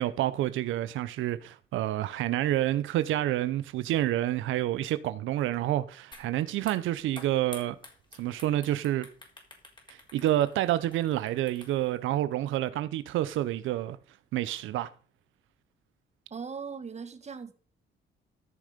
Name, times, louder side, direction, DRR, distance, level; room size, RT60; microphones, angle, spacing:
voice 1, 0.0-7.8 8.2-9.1 9.9-14.0 14.3-14.9, right 13 dB, 85° right, 0.7 m, -28 dB
sound 1, 6.1-6.3 6.6-12.0, left 2 dB, 25° left, 4.0 m, -50 dB
voice 2, 16.3-17.5, right 5 dB, 35° right, 1.7 m, -39 dB
14.0 x 6.5 x 5.0 m
cardioid pair, 90°, 20 cm